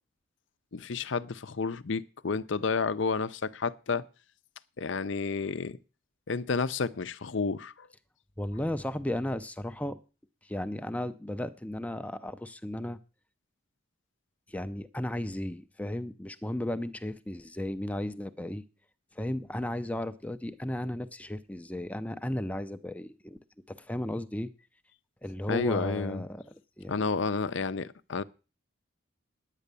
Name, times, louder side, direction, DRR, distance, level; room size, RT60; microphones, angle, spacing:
voice 1, 0.7-4.0 4.8-5.8 6.3-7.9 25.5-26.2 26.9-28.2, left 4 dB, 60° left, 0.6 m, -31 dB
voice 2, 8.4-10.0 10.4-13.0 14.5-18.6 19.2-23.4 23.7-24.5 25.2-27.1, left 1 dB, 5° left, 0.5 m, -35 dB
10.0 x 9.2 x 6.8 m
head